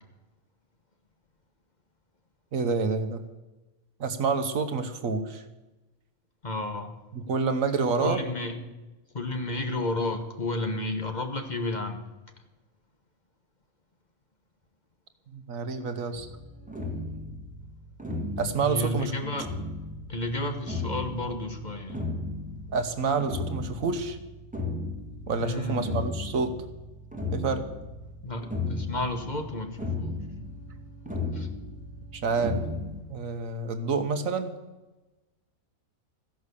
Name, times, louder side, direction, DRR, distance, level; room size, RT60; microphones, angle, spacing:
voice 1, 2.5-3.2 4.0-5.4 7.1-8.2 15.3-16.3 18.4-19.1 22.7-24.2 25.3-26.6 27.3-27.6 32.1-32.6 33.1-34.5, right 4 dB, 75° right, 8 dB, 1.5 m, -28 dB
voice 2, 6.4-7.0 8.0-8.6 9.1-12.1 18.6-19.5 20.1-22.1 25.4-26.1 28.2-30.2 31.3-31.5, left 2 dB, 35° left, 5 dB, 1.3 m, -32 dB
sound 1, 16.2-33.0, left 2 dB, 5° right, 1.5 m, -36 dB
14.5 x 10.5 x 6.8 m, 1.1 s
omnidirectional pair, 1.4 m